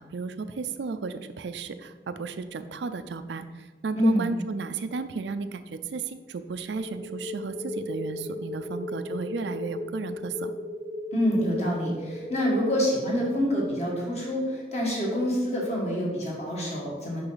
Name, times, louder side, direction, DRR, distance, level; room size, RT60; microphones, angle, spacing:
voice 1, 0.1-3.4 3.8-10.5, right 4 dB, 80° right, 10 dB, 0.4 m, -34 dB
voice 2, 3.9-4.3 11.1-17.2, equal, 40° left, -3 dB, 1.9 m, -26 dB
sound 1, 6.7-13.2, left 2 dB, 10° right, 0.6 m, -36 dB
6.7 x 5.4 x 4.0 m, 1.3 s
head